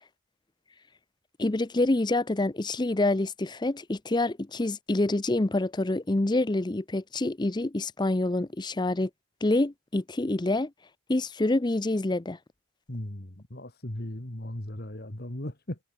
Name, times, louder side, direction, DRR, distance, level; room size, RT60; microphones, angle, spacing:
voice 1, 1.4-9.1 9.4-10.7 11.1-12.4, left 2 dB, 20° left, 0.5 m, -27 dB
voice 2, 12.9-15.8, left 1 dB, 45° left, 2.3 m, -37 dB
head